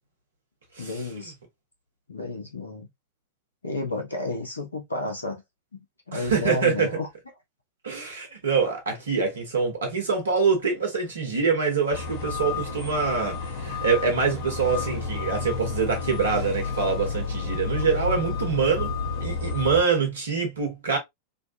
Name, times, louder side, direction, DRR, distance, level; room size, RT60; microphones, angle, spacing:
voice 1, 0.8-1.3 2.1-2.9 3.6-5.4 6.1-7.1, left 2 dB, 80° left, 1.0 m, -31 dB
voice 2, 6.1-6.9 7.8-18.9 19.2-21.0, right 5 dB, 70° right, 1.2 m, -25 dB
sound 1, 11.9-19.8, left 5 dB, 50° left, 1.3 m, -31 dB
3.2 x 2.3 x 2.7 m
figure-of-eight pair, 90°, 0 cm